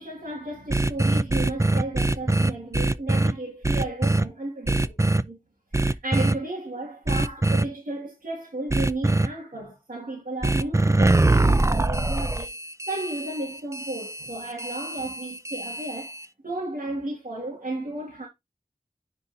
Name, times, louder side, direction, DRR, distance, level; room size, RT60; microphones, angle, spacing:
voice 1, 0.0-5.0 5.2-5.4 5.7-12.5 12.9-16.2 16.4-18.3, right 2 dB, 90° right, 1.9 m, -34 dB
sound 1, 0.7-3.3 3.6-4.2 4.7-5.2 5.7-6.3 7.1-7.6 8.7-9.3 10.4-16.2, right 2 dB, 20° right, 0.5 m, -23 dB
10.5 x 4.2 x 2.6 m
wide cardioid pair, 45°, 14 cm